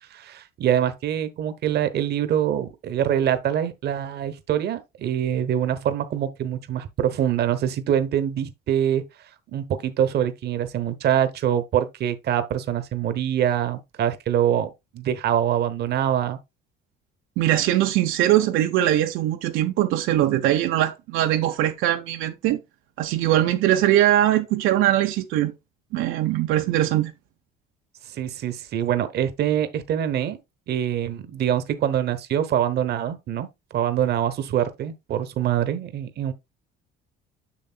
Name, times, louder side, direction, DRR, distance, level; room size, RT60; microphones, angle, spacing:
voice 1, 0.1-9.0 9.5-16.4 28.1-30.4 30.7-36.3, right 10 dB, 55° right, 1.0 m, -24 dB
voice 2, 17.4-22.6 23.0-25.5 25.9-27.1, right 13 dB, 75° right, 0.8 m, -21 dB
7.2 x 6.5 x 2.3 m
cardioid pair, 130°, 21 cm